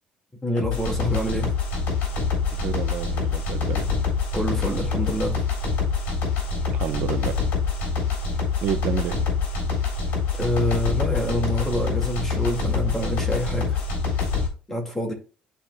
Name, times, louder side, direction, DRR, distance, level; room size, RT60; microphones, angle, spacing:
voice 1, 0.4-1.5 4.3-5.4 10.4-13.8 14.7-15.1, equal, 10° left, 2.1 m, -26 dB
sound 1, 0.6-14.5, left 4 dB, 70° left, 3.8 m, -25 dB
voice 2, 2.5-3.9 6.7-7.4 8.6-9.2, right 9 dB, 65° right, 0.8 m, -29 dB
11.5 x 4.4 x 2.2 m
cardioid pair, 160°, 3 cm